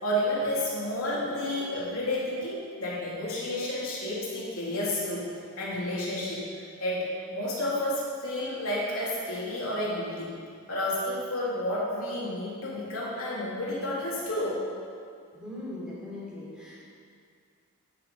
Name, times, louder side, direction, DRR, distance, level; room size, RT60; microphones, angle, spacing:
voice 1, 0.0-5.2 5.6-10.3 10.7-14.6, left 1 dB, 65° left, -6 dB, 3.4 m, -31 dB
voice 2, 15.3-16.8, left 1 dB, 5° right, -7 dB, 3.4 m, -40 dB
16.0 x 7.0 x 5.5 m, 2.2 s
head